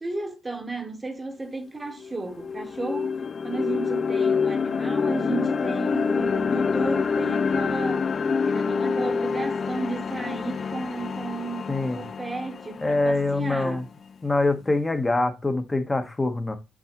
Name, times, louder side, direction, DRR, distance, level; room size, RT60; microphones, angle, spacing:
voice 1, 0.0-3.2 3.4-8.1 8.5-13.8, right 3 dB, 20° right, 1.1 m, -33 dB
sound 1, 1.5-1.6 2.0-14.0, left 5 dB, 45° left, 0.3 m, -27 dB
voice 2, 12.8-13.8 14.2-16.5, left 2 dB, 20° left, 1.1 m, -24 dB
6.2 x 5.5 x 3.0 m
cardioid pair, 90°, 0 cm